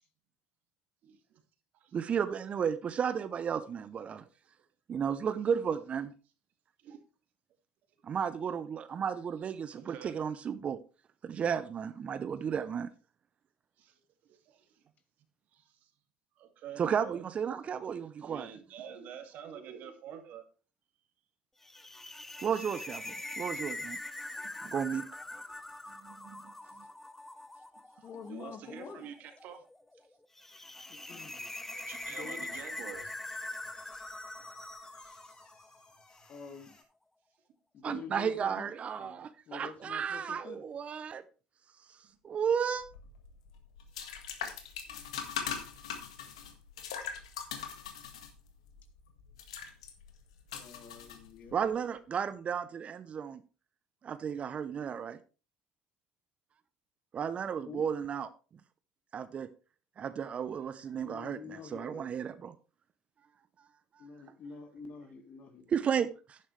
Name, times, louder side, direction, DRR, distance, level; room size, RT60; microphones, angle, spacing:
voice 1, 1.0-1.4 1.7-2.0 6.8-7.0 9.4-10.4 12.5-12.6 13.8-14.8 15.5-15.9 16.3-17.3 18.2-20.4 24.3-24.8 25.3-25.4 25.9-26.9 27.5-27.6 27.9-29.6 29.9-30.1 31.7-33.1 34.5-34.6 35.3-35.6 42.1-42.2 44.4-45.1, right 8 dB, 60° right, 2.3 m, -49 dB
voice 2, 1.9-4.2 4.9-6.1 8.0-10.8 11.2-12.9 16.8-18.5 22.4-24.0 24.7-25.1 37.8-41.2 42.2-42.8 51.5-53.4 54.0-55.2 57.1-58.3 59.1-59.5 60.0-61.4 61.7-62.5 65.7-66.4, right 7 dB, 40° right, 0.7 m, -33 dB
sound 1, 21.6-36.0, left 2 dB, 10° left, 1.0 m, -43 dB
voice 3, 28.0-29.1 30.9-31.5 32.1-32.5 34.3-34.6 36.3-36.7 37.7-40.6 50.5-51.7 57.7-57.9 60.9-62.2 64.0-65.8, left 5 dB, 50° left, 2.0 m, -47 dB
sound 2, 31.8-36.8, left 2 dB, 30° left, 5.6 m, -59 dB
sound 3, 42.8-51.7, left 7 dB, 85° left, 1.6 m, -42 dB
11.0 x 10.0 x 3.3 m
hypercardioid pair, 75°, 3 cm